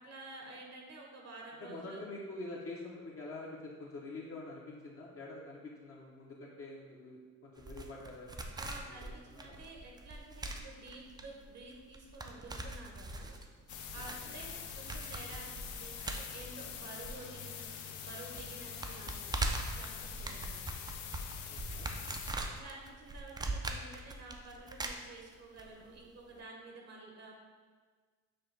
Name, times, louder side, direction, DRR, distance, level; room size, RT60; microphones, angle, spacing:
voice 1, 0.0-2.0 8.5-13.3 13.9-19.3 19.6-20.6 22.4-27.3, right 2 dB, 60° right, 0 dB, 0.9 m, -51 dB
voice 2, 1.6-9.6 14.1-14.3 21.5-21.9, left 2 dB, 50° left, -4 dB, 0.7 m, -46 dB
sound 1, 7.6-17.7 17.9-18.0 18.4-25.6 25.9-26.0, right 2 dB, 15° right, 0.3 m, -41 dB
sound 2, 13.7-22.3, left 8 dB, 80° left, 0.5 m, -45 dB
5.9 x 2.3 x 3.2 m, 1.5 s
cardioid pair, 90°, 30 cm